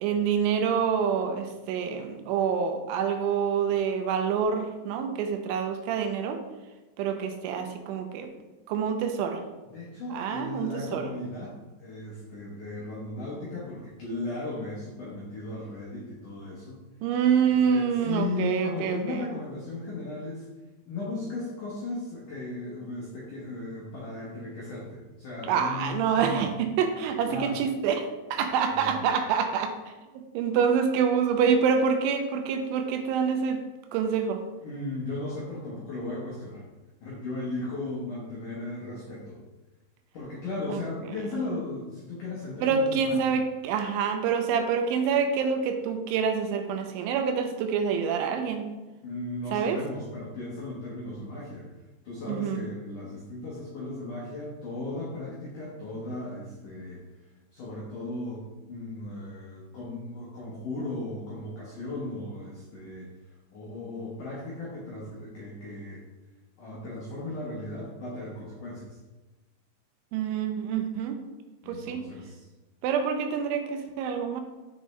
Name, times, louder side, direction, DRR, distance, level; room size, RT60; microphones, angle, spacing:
voice 1, 0.0-6.4 7.0-8.3 8.7-9.4 10.1-11.1 17.0-19.2 25.4-29.7 30.1-33.6 33.9-34.4 40.7-40.8 42.6-48.7 49.5-49.8 52.3-52.7 70.1-71.2 71.7-72.1 72.8-74.4, right 6 dB, 85° right, 6 dB, 2.9 m, -26 dB
voice 2, 9.7-16.8 17.5-20.5 20.9-26.5 27.0-27.6 28.4-29.1 34.6-36.6 37.0-39.4 40.1-43.3 49.0-51.7 52.0-57.0 57.5-63.1 63.5-66.0 66.6-69.0 71.6-72.5, left 2 dB, 80° left, -6 dB, 1.8 m, -36 dB
7.2 x 5.3 x 3.2 m, 1.1 s
omnidirectional pair, 5.5 m